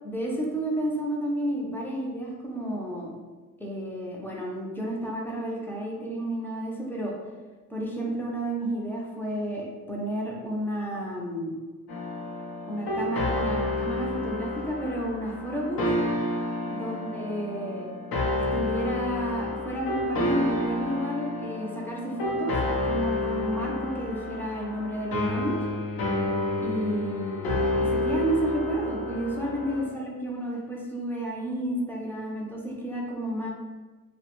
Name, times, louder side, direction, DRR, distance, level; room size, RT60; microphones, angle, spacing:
voice 1, 0.0-3.2 3.6-7.1 7.7-11.6 12.7-15.9 16.7-17.9 18.3-22.6 22.9-25.6 26.6-33.5, right 1 dB, 5° left, -3 dB, 0.3 m, -31 dB
sound 1, 11.9-29.8, left 1 dB, 90° left, 0.6 m, -29 dB
2.6 x 2.1 x 2.9 m, 1.3 s
wide cardioid pair, 155°, 35 cm